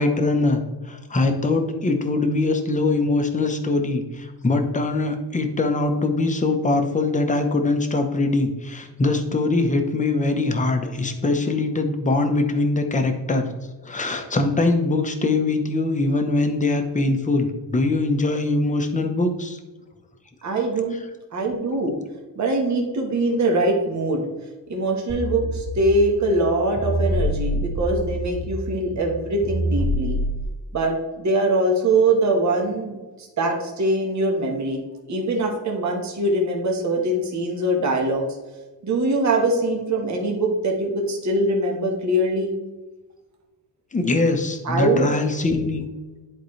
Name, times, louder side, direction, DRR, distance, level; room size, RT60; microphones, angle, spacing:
voice 1, 0.0-13.5 13.8-19.6 43.9-45.9, left 2 dB, 20° left, 5 dB, 0.8 m, -22 dB
voice 2, 20.4-21.0 21.3-22.0 22.3-24.3 24.7-30.2 30.7-34.8 35.1-38.3 38.8-42.5 44.6-45.1, right 2 dB, 40° right, 0 dB, 1.3 m, -22 dB
sound 1, 25.1-30.4, equal, 20° right, 2.1 m, -27 dB
10.5 x 4.6 x 3.2 m, 1.2 s
wide cardioid pair, 150°, 42 cm